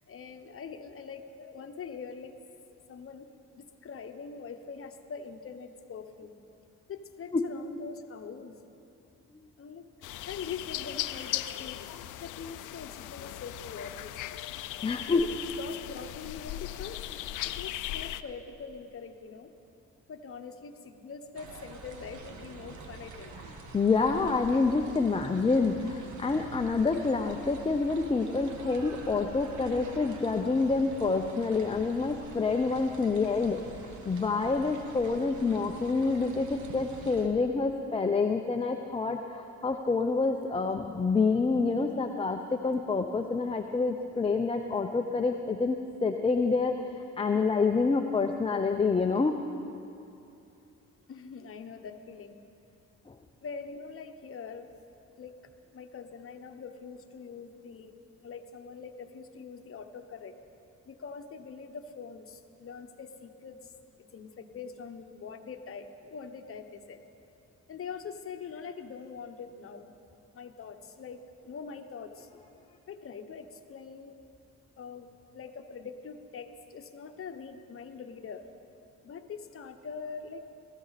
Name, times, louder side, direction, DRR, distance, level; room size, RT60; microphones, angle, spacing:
voice 1, 0.1-2.3 2.9-3.3 3.5-6.4 6.9-8.6 9.6-9.9 10.3-11.8 12.2-14.5 15.2-17.0 17.3-19.5 20.1-23.3 51.1-52.4 53.4-54.7 55.2-55.3 55.7-57.9 58.2-60.3 60.9-63.7 64.0-67.0 67.7-69.9 70.3-72.3 72.9-74.2 74.8-78.4 79.0-80.5, left 5 dB, 45° left, 7 dB, 1.1 m, -43 dB
sound 1, 10.0-18.2, left 14 dB, 80° left, 0.5 m, -38 dB
voice 2, 14.8-15.3 23.7-33.6 34.0-46.8 47.2-49.4 53.1-53.2, left 4 dB, 20° left, 4 dB, 0.7 m, -27 dB
sound 2, 21.3-37.3, right 3 dB, 70° right, 1.6 m, -46 dB
19.0 x 14.0 x 4.1 m, 2.7 s
cardioid pair, 90°, 30 cm